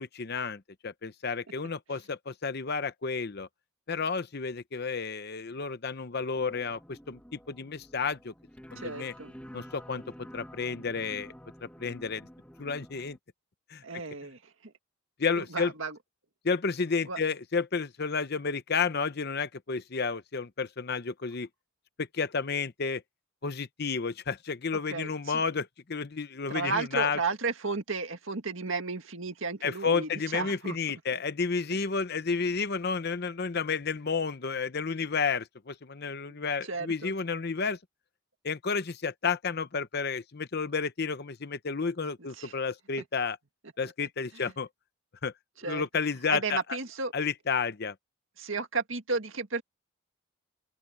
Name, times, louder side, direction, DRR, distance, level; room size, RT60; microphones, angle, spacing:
voice 1, 0.0-3.5 3.9-8.3 8.7-9.1 9.5-10.0 10.3-11.3 11.6-12.3 12.6-13.2 13.7-13.8 15.2-15.7 16.4-21.5 22.0-23.0 23.4-27.2 29.6-37.8 38.4-43.4 43.8-44.7 45.2-45.3 45.6-46.6 47.1-47.9, left 5 dB, 50° left, 0.7 m, -31 dB
sound 1, 6.3-13.2, equal, 5° left, 1.6 m, -49 dB
voice 2, 8.8-9.3 13.8-14.7 15.4-16.0 17.1-17.2 24.9-25.4 26.5-30.8 36.3-37.1 42.4-42.5 44.3-44.5 45.6-45.8 46.3-47.1 48.4-49.6, right 4 dB, 65° right, 2.0 m, -34 dB
open air
head